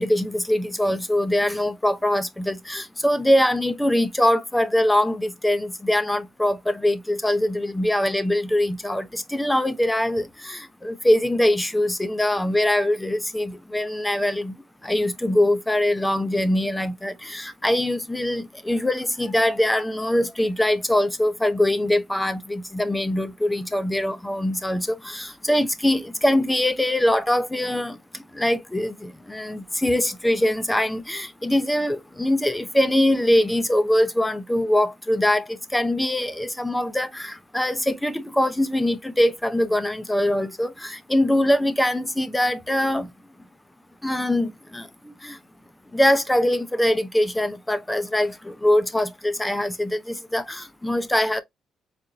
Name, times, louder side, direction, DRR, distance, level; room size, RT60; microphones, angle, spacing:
voice 1, 0.0-14.5 14.8-28.0 28.4-35.4 35.7-43.1 44.0-44.8 45.2-45.3 45.9-51.4, left 1 dB, 10° left, 0.6 m, -23 dB
4.2 x 2.5 x 2.7 m
cardioid pair, 90°, 0 cm